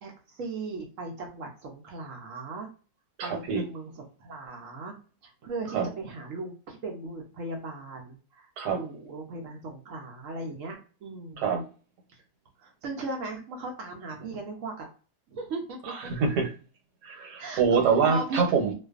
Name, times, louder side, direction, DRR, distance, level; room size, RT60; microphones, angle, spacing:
voice 1, 0.0-2.7 3.2-4.9 5.2-11.4 12.1-12.2 12.6-14.9 15.3-16.1 17.4-17.6 18.0-18.4, right 3 dB, 65° right, 1 dB, 0.8 m, -38 dB
voice 2, 3.2-3.6 5.7-5.9 8.6-8.8 11.4-11.6 15.9-16.5 17.0-18.7, right 5 dB, 85° right, 3 dB, 1.3 m, -25 dB
2.5 x 2.3 x 2.3 m, 0.36 s
omnidirectional pair, 1.7 m